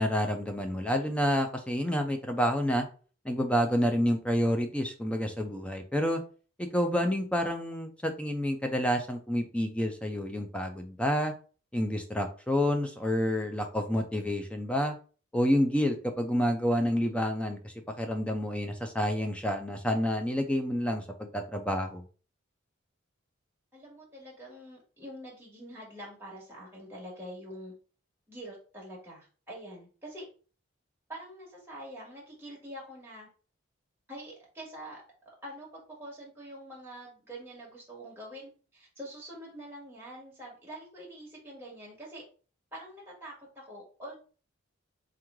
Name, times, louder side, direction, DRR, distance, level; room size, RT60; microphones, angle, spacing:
voice 1, 0.0-2.9 3.2-6.2 6.6-11.3 11.7-14.9 15.3-22.0, equal, 5° left, 5 dB, 0.5 m, -29 dB
voice 2, 23.7-27.7 28.3-30.2 31.1-33.3 34.1-35.0 35.4-42.3 42.7-44.2, right 1 dB, 10° right, -4 dB, 1.6 m, -45 dB
3.7 x 3.1 x 3.6 m, 0.38 s
head